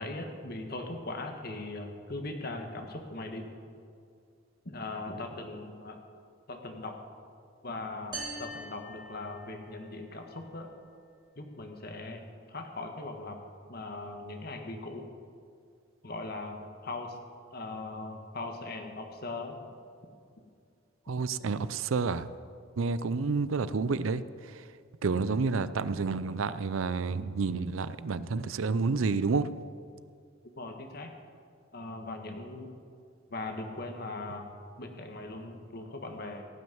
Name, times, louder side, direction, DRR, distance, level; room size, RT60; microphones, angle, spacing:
voice 1, 0.0-3.5 4.6-6.0 6.5-7.0 7.6-10.7 11.4-12.2 12.5-13.4 13.7-15.1 16.0-17.2 17.5-19.6 30.5-31.1 31.7-32.7 33.3-36.4, left 2 dB, 50° left, 4 dB, 1.6 m, -39 dB
sound 1, 8.1-9.9, right 2 dB, 20° right, 2.5 m, -42 dB
voice 2, 21.1-22.3 22.8-24.6 25.0-29.5, right 4 dB, 85° right, 15 dB, 0.5 m, -29 dB
16.5 x 6.3 x 9.3 m, 2.3 s
head